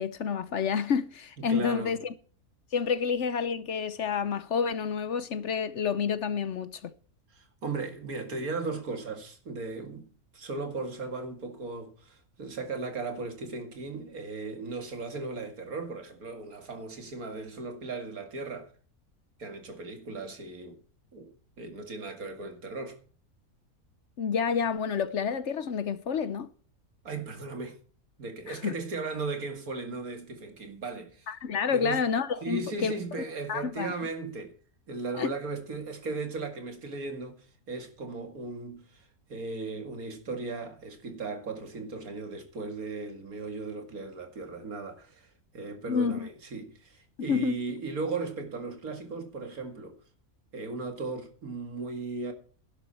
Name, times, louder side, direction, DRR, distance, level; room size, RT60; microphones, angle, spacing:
voice 1, 0.0-2.1 2.7-6.9 24.2-26.5 28.5-28.7 31.3-32.9 33.5-33.9 35.2-35.3 45.9-46.3 47.2-47.6, left 6 dB, 60° left, 1.0 m, -29 dB
voice 2, 1.4-1.9 7.3-18.7 19.4-20.8 21.1-23.0 27.0-27.8 28.2-31.3 31.7-32.0 32.4-34.5 34.9-50.0 50.5-52.3, right 3 dB, 75° right, 2.5 m, -37 dB
12.0 x 11.5 x 4.3 m
omnidirectional pair, 1.5 m